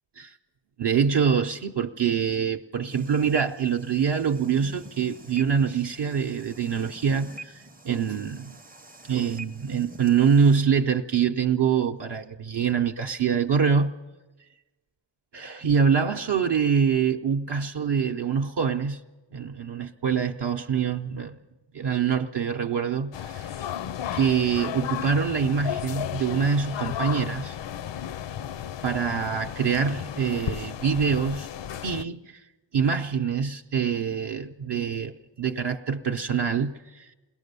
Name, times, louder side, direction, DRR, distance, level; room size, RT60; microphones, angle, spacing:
voice 1, 0.8-8.6 9.0-13.9 15.3-19.0 19.3-21.4 21.7-23.6 24.1-27.6 28.8-31.5 31.8-32.4 32.7-37.1, right 6 dB, 60° right, 0.7 m, -25 dB
sound 1, 2.9-10.6, right 1 dB, 20° right, 0.6 m, -46 dB
sound 2, 23.1-32.0, left 10 dB, 70° left, 0.5 m, -34 dB
21.5 x 18.0 x 6.8 m
wide cardioid pair, 120°, 47 cm